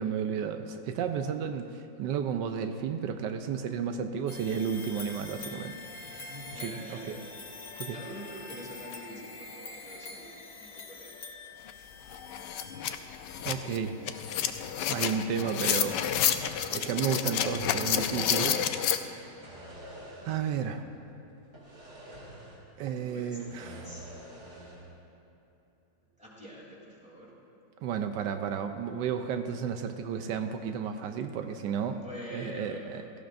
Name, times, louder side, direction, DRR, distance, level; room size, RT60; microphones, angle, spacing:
voice 1, 0.0-5.8 6.5-7.2 7.8-8.0 13.4-14.0 14.9-16.0 16.7-19.4 20.2-20.8 22.8-23.8 27.8-32.0 32.3-33.0, right 7 dB, 85° right, 7 dB, 1.2 m, -32 dB
sound 1, 4.3-13.3, left 3 dB, 65° left, 1.6 m, -45 dB
voice 2, 6.0-10.3 10.6-11.1 23.0-24.1 26.2-27.3 31.9-33.1, equal, 5° right, -6 dB, 3.2 m, -46 dB
sound 2, 11.7-11.8 12.1-19.0, left 9 dB, 85° left, 1.2 m, -30 dB
sound 3, 15.5-17.2 17.5-18.7 19.2-20.6 20.8-21.0 21.5-22.8 23.1-24.9, right 1 dB, 40° right, 2.8 m, -48 dB
17.5 x 14.5 x 2.6 m, 2.9 s
omnidirectional pair, 1.9 m